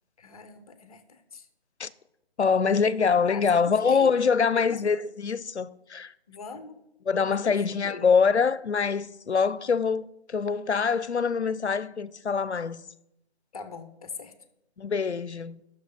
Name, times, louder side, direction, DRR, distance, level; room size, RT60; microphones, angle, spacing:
voice 1, 0.2-1.5 3.1-4.1 4.5-4.9 6.3-6.8 7.3-8.1 13.5-14.3, left 5 dB, 35° left, 1.0 m, -42 dB
voice 2, 2.4-6.1 7.1-12.8 14.8-15.6, left 5 dB, 85° left, 0.6 m, -24 dB
9.3 x 6.7 x 5.6 m
figure-of-eight pair, 150°, 33 cm